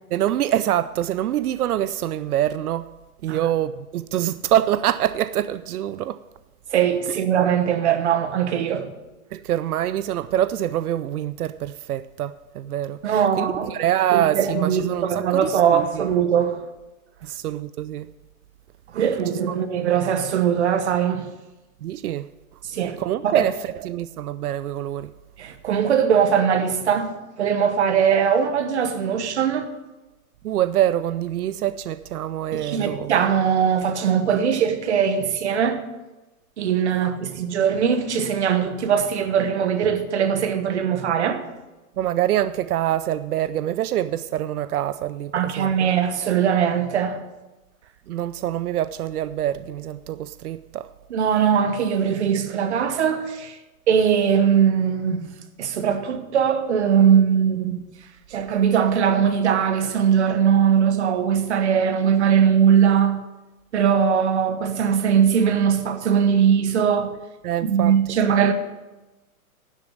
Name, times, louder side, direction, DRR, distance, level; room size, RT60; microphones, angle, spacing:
voice 1, 0.1-2.9 3.2-6.2 9.3-16.1 17.2-18.1 19.5-19.6 21.8-22.3 23.0-23.6 23.8-25.1 30.4-33.1 37.0-37.2 42.0-45.7 48.1-50.9 67.4-67.9, right 12 dB, 90° right, 0.6 m, -25 dB
voice 2, 6.7-8.9 13.0-13.7 14.1-16.7 18.9-21.3 22.6-23.5 25.4-29.7 32.5-35.9 36.6-41.5 45.3-47.2 51.1-53.6 53.9-55.3 55.6-57.9 58.3-63.2 63.7-67.2 67.6-68.5, right 8 dB, 50° right, 1.2 m, -20 dB
11.5 x 7.5 x 7.2 m
hypercardioid pair, 170°, 43 cm